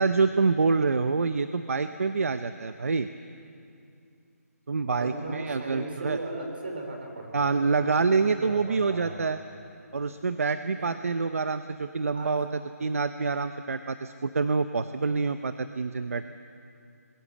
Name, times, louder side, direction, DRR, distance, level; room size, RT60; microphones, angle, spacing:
voice 1, 0.0-3.1 4.7-6.2 7.3-9.4 9.9-12.5 12.8-16.2, right 4 dB, 60° right, 10 dB, 0.8 m, -26 dB
voice 2, 4.8-9.1 10.7-11.0 12.1-12.4, right 2 dB, 40° right, 2 dB, 4.2 m, -38 dB
26.0 x 22.0 x 7.3 m, 2.5 s
hypercardioid pair, 180°, 9 cm